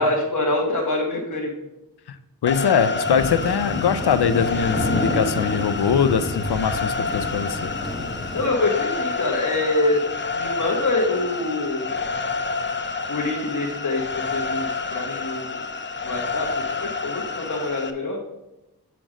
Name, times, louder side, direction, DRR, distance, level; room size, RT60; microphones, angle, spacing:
voice 1, 0.0-1.5 8.3-10.0 10.3-11.9 13.1-15.6 16.0-16.5 16.8-18.2, left 2 dB, 55° left, -1 dB, 1.2 m, -25 dB
voice 2, 2.4-7.7, left 7 dB, 90° left, 10 dB, 0.6 m, -22 dB
sound 1, 2.5-17.9, left 4 dB, 30° left, 0.6 m, -29 dB
sound 2, 3.0-8.5, equal, ahead, 1.0 m, -30 dB
6.0 x 5.1 x 6.1 m, 0.98 s
wide cardioid pair, 65°, 38 cm